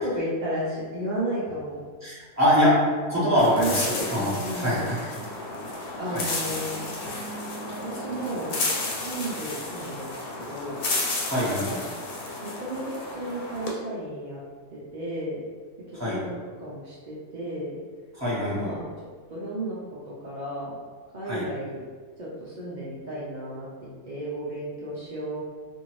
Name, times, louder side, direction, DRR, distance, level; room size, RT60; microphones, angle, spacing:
voice 1, 0.0-1.9 3.6-4.1 4.4-4.9 6.0-6.8 7.8-8.6 8.9-10.1 10.4-10.8 12.4-14.4 14.7-15.4 15.9-17.8 18.4-18.9 19.3-20.8 21.1-21.8 22.2-23.7 24.0-25.4, right 1 dB, 80° right, -6 dB, 0.4 m, -33 dB
voice 2, 2.0-5.2 6.1-6.2 11.2-11.8 15.9-16.2 18.1-18.7 21.2-21.4, equal, 10° right, -10 dB, 1.0 m, -24 dB
sound 1, 3.4-13.7, left 2 dB, 80° left, 1.1 m, -32 dB
2.6 x 2.6 x 3.0 m, 1.5 s
omnidirectional pair, 1.6 m